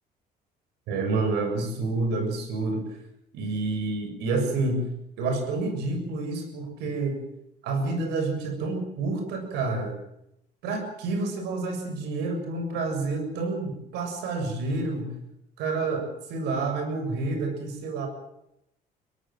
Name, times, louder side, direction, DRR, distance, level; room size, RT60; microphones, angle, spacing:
voice 1, 0.9-2.9 3.3-4.9 5.2-7.2 7.6-10.0 10.6-15.1 15.6-18.1, right 3 dB, 85° right, 5 dB, 7.1 m, -29 dB
23.0 x 18.0 x 7.7 m, 0.82 s
cardioid pair, 110°, 17 cm